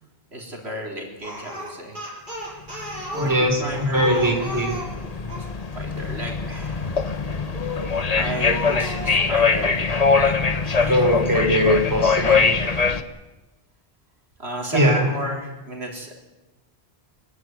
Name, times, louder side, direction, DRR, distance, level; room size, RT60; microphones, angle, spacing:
voice 1, 0.3-2.0 3.1-4.4 5.3-5.4 5.7-6.9 8.1-9.9 10.1-10.4 10.6-11.0 12.2-12.3 14.4-16.1, right 1 dB, 85° right, 0 dB, 4.2 m, -33 dB
Speech, 1.2-5.5 7.5-8.0 8.4-9.3, left 1 dB, 50° right, 7.2 m, -33 dB
sound 1, 2.9-13.0, left 5 dB, 40° left, 1.2 m, -23 dB
voice 2, 3.2-4.7 10.9-12.5 14.7-15.1, equal, 20° right, 2 dB, 4.7 m, -20 dB
24.0 x 15.5 x 9.6 m, 1.1 s
omnidirectional pair, 1.1 m